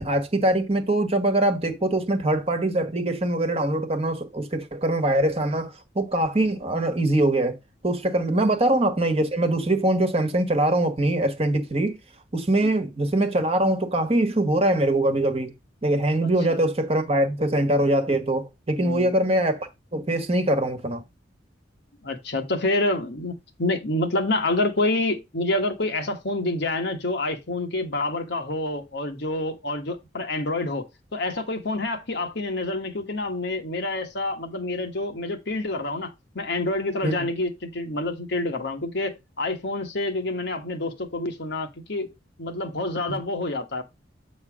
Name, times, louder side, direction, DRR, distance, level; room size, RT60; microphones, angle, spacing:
voice 1, 0.0-7.6 7.8-12.0 12.3-15.5 15.8-21.0 37.0-37.1 43.1-43.2, right 1 dB, 30° right, 1.3 m, -23 dB
voice 2, 18.8-19.1 22.0-42.1 42.4-43.8, left 2 dB, 60° left, 1.3 m, -27 dB
8.2 x 3.2 x 6.1 m
head